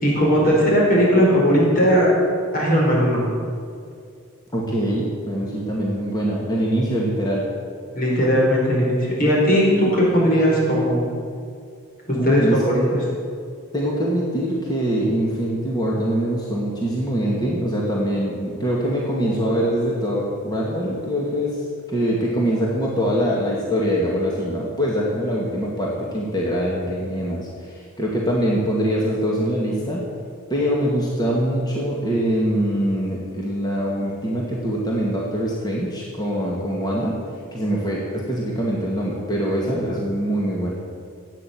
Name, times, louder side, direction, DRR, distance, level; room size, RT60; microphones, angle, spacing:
voice 1, 0.0-2.1 2.5-3.2 7.9-11.0 12.1-12.7, equal, 40° left, -3 dB, 4.7 m, -18 dB
voice 2, 4.5-7.5 12.2-12.9 13.7-30.0 30.5-37.2 37.5-40.7, equal, 20° left, -4 dB, 2.2 m, -23 dB
16.0 x 9.2 x 9.3 m, 2.3 s
head